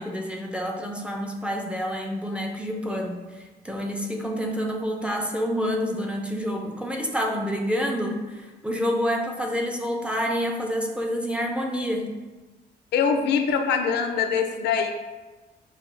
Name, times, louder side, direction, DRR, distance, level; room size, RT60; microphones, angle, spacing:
voice 1, 0.0-12.2, equal, 5° right, 1 dB, 0.3 m, -28 dB
voice 2, 12.9-14.9, left 6 dB, 75° left, 6 dB, 0.5 m, -23 dB
6.2 x 2.3 x 3.2 m, 1.2 s
cardioid pair, 155°, 18 cm